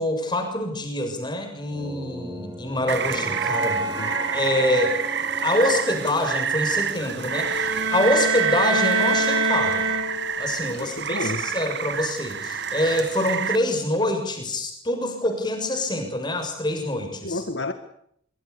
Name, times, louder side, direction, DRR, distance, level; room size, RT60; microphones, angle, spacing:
voice 1, 0.0-3.8 4.3-5.0 5.4-9.8 10.4-17.4, left 1 dB, 20° left, 5 dB, 7.1 m, -25 dB
sound 1, 1.7-7.8, right 1 dB, 20° right, 4.9 m, -33 dB
Rain, 2.9-13.6, right 7 dB, 55° right, 1.4 m, -28 dB
voice 2, 3.8-4.2 10.7-11.4 17.2-17.7, left 2 dB, 60° left, 9 dB, 1.8 m, -31 dB
sound 2, 7.3-10.5, right 3 dB, 85° right, 4.4 m, -24 dB
25.5 x 24.5 x 7.0 m, 0.68 s
head